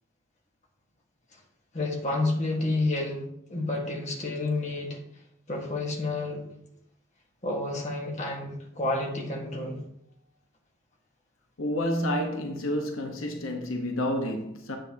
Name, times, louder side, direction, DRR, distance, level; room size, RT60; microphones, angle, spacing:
voice 1, 1.7-5.0 5.5-6.5 7.4-9.8, left 2 dB, 35° left, 1.7 m, -30 dB
voice 2, 11.6-14.8, equal, 85° left, 1.1 m, -29 dB
8.8 x 7.7 x 2.9 m
head